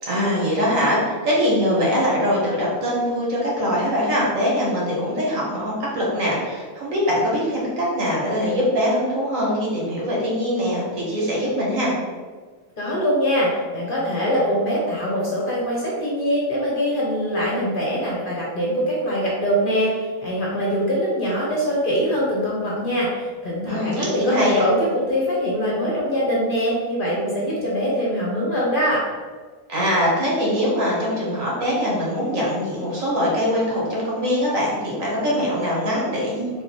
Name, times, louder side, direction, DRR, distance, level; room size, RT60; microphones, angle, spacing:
voice 1, 0.0-11.9 23.6-24.6 29.7-36.5, equal, 70° right, -5 dB, 1.7 m, -22 dB
voice 2, 12.8-29.0, equal, 40° left, -5 dB, 1.1 m, -23 dB
3.7 x 3.3 x 4.3 m, 1.5 s
omnidirectional pair, 1.5 m